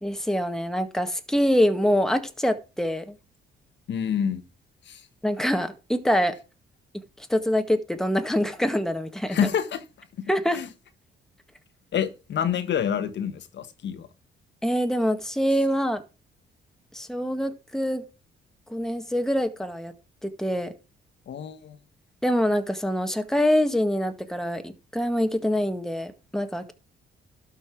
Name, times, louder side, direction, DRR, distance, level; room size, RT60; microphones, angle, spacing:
voice 1, 0.0-3.2 5.2-6.3 7.2-9.4 10.3-10.6 14.6-16.0 16.9-18.0 18.7-19.9 20.2-20.7 22.2-26.7, equal, ahead, 1.7 m, -25 dB
voice 2, 3.9-4.4 4.8-5.1 9.3-10.7 11.9-14.1 21.3-21.8, left 8 dB, 65° left, 1.4 m, -28 dB
12.0 x 5.5 x 6.1 m
cardioid pair, 90°, 20 cm